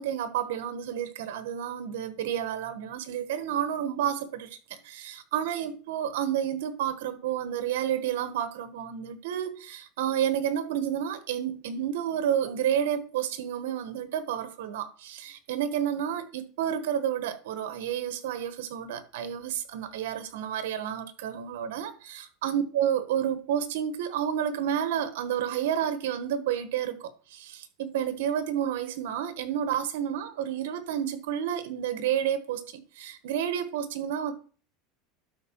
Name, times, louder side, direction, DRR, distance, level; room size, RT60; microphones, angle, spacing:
voice 1, 0.0-34.3, right 9 dB, 85° right, 1.3 m, -30 dB
12.0 x 4.5 x 4.5 m
supercardioid pair, 130°, 0 cm